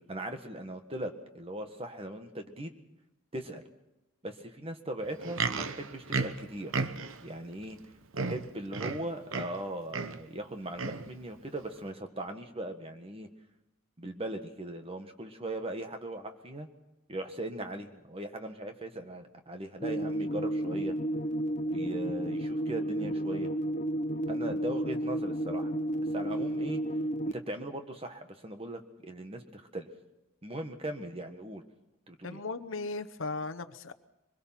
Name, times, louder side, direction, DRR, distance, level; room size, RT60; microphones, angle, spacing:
voice 1, 0.0-2.8 3.3-3.6 4.2-6.7 7.2-7.8 8.1-13.3 14.0-16.7 17.1-20.9 21.7-23.5 24.3-25.7 26.1-26.8 27.3-29.9 30.4-31.6 32.1-32.4, right 1 dB, 25° right, 6 dB, 1.6 m, -39 dB
Livestock farm animals working animals, 5.0-7.3 7.8-7.9 8.1-9.6 9.9-10.2 10.8-11.1 11.8-11.9, right 4 dB, 75° right, 1.0 m, -34 dB
sound 1, 19.8-27.3, right 1 dB, 35° left, 0.8 m, -32 dB
voice 2, 32.2-33.9, left 3 dB, 70° left, 10 dB, 1.0 m, -37 dB
24.0 x 21.5 x 5.9 m, 0.94 s
head